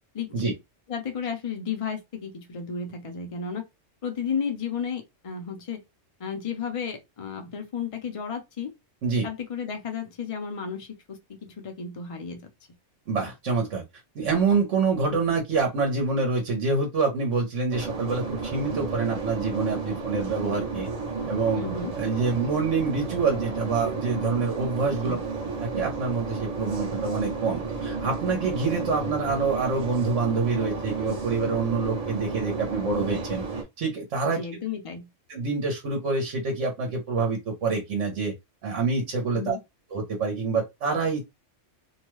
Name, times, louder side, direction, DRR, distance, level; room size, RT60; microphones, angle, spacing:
voice 1, 0.1-0.6 0.9-3.6 4.0-5.8 6.2-8.7 9.2-12.5 21.5-21.9 25.0-25.2 34.3-35.1 39.3-39.6, left 6 dB, 35° left, 0.6 m, -33 dB
voice 2, 13.1-13.8 14.1-20.9 21.3-21.6 21.9-25.2 25.6-33.4 33.8-34.4 35.3-38.3 38.6-39.6 39.9-41.3, right 4 dB, 70° right, 1.2 m, -26 dB
sound 1, 17.7-33.6, right 4 dB, 35° right, 0.8 m, -32 dB
2.8 x 2.2 x 3.0 m
omnidirectional pair, 1.3 m